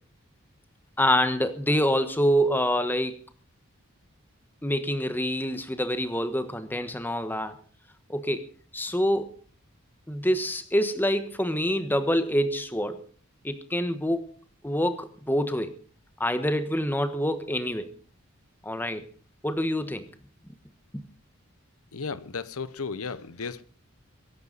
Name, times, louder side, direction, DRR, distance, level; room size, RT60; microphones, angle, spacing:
voice 1, 1.0-3.2 4.6-7.6 8.1-9.3 10.1-13.1 13.4-14.3 14.6-15.7 16.2-17.9 18.6-19.1 19.4-20.1 20.9-21.0, equal, 10° left, 1.3 m, -26 dB
voice 2, 21.9-23.6, left 5 dB, 80° left, 0.9 m, -34 dB
23.0 x 11.5 x 4.1 m
head